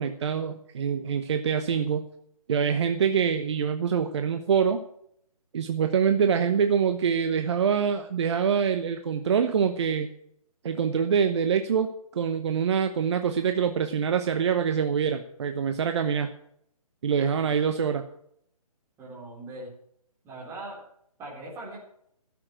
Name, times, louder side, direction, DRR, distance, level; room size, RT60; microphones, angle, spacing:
voice 1, 0.0-2.0 2.5-4.8 5.5-10.1 10.6-16.3 17.0-18.0, right 7 dB, 45° right, 8 dB, 1.0 m, -25 dB
voice 2, 19.0-19.7 20.2-20.8 21.2-21.8, right 2 dB, 15° right, -4 dB, 4.0 m, -40 dB
13.0 x 7.5 x 7.8 m, 0.69 s
figure-of-eight pair, 145°, 19 cm